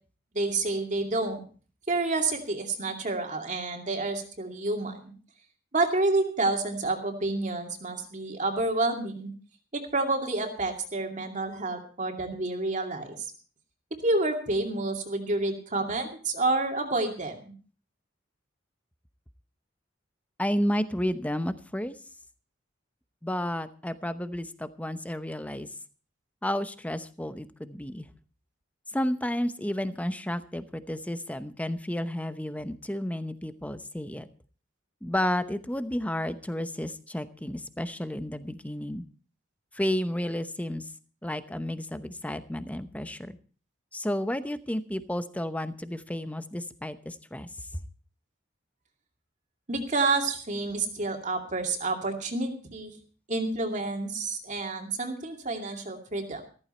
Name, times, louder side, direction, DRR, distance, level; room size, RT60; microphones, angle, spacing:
voice 1, 0.3-1.4 1.9-5.1 5.7-9.3 9.7-13.3 13.9-17.5 49.7-52.9 53.3-56.4, right 2 dB, 40° right, 3 dB, 2.4 m, -29 dB
voice 2, 20.4-22.0 23.2-25.7 26.4-28.1 28.9-34.3 35.0-39.0 39.7-40.8 41.2-43.4 43.9-47.5, left 1 dB, 10° left, 12 dB, 0.8 m, -31 dB
14.5 x 14.5 x 4.4 m, 0.40 s
head